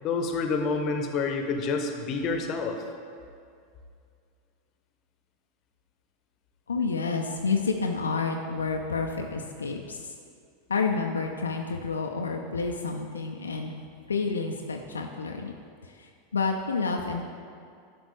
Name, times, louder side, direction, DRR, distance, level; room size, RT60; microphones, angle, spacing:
voice 1, 0.0-2.8, left 4 dB, 40° left, 5 dB, 0.9 m, -28 dB
voice 2, 6.7-10.1 10.7-13.7 14.1-15.5 16.0-17.2, left 4 dB, 75° left, 2 dB, 0.5 m, -29 dB
11.0 x 6.0 x 3.4 m, 2.3 s
figure-of-eight pair, 85°, 0 cm